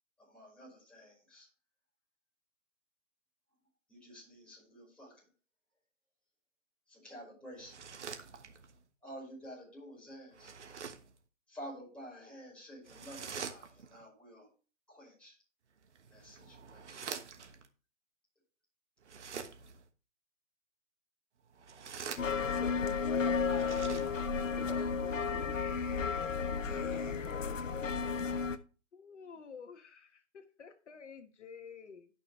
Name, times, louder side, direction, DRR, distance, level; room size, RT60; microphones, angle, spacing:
voice 1, 0.2-1.5 3.9-5.2 6.9-7.8 9.0-10.5 11.5-14.5 14.9-15.4 16.1-17.0, equal, 5° left, -6 dB, 5.3 m, -50 dB
sound 1, 7.6-8.8 10.3-11.2 12.8-14.0 15.8-17.7 19.0-19.9 21.5-22.7 23.4-24.5, right 6 dB, 65° right, 1.4 m, -46 dB
sound 2, 22.2-28.6, left 5 dB, 80° left, 1.0 m, -33 dB
voice 2, 23.2-23.7 24.1-25.3 26.5-27.2, right 4 dB, 35° right, 1 dB, 2.4 m, -57 dB
voice 3, 28.9-32.1, left 6 dB, 65° left, 6 dB, 1.4 m, -51 dB
13.0 x 6.2 x 3.2 m, 0.35 s
hypercardioid pair, 140°, 38 cm